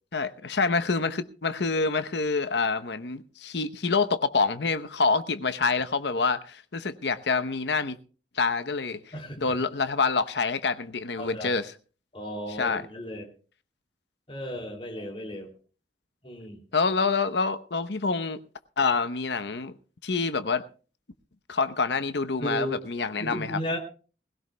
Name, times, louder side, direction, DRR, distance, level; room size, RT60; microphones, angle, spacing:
voice 1, 0.1-8.0 8.4-9.0 9.4-11.7 12.6-12.8 16.7-18.4 18.8-19.7 20.0-20.6 21.5-23.6, left 4 dB, 65° left, 0.8 m, -27 dB
voice 2, 11.2-11.5 12.1-13.3 14.3-15.5 16.2-16.6 22.4-22.8 23.2-23.8, equal, 30° left, 2.8 m, -34 dB
20.5 x 16.5 x 2.2 m
head